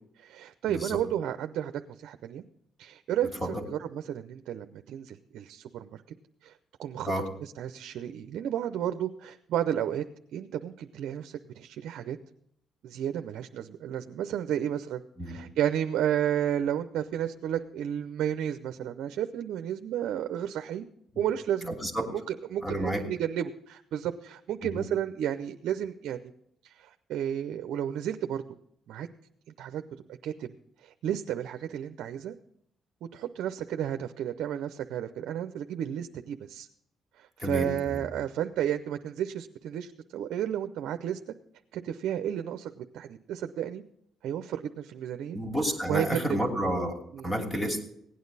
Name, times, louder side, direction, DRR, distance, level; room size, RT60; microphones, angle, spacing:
voice 1, 0.0-1.7 2.0-2.4 2.8-6.0 6.4-6.5 6.8-7.1 7.4-10.0 10.3-12.2 12.8-15.0 15.3-20.8 21.2-21.7 22.1-26.3 26.6-28.4 28.9-29.1 29.6-29.8 30.2-30.5 30.8-32.3 33.1-36.7 37.2-41.2 41.7-43.8 44.2-45.4 45.9-46.4 47.1-47.4, right 10 dB, 80° right, 8 dB, 0.6 m, -32 dB
voice 2, 0.7-1.0 3.4-3.6 7.0-7.3 15.2-15.4 21.1-21.2 21.7-22.0 22.6-23.0 24.6-24.8 37.4-38.1 45.3-47.0 47.2-47.8, equal, 15° left, 4 dB, 2.8 m, -30 dB
16.5 x 9.5 x 4.0 m, 0.72 s
cardioid pair, 90°, 0 cm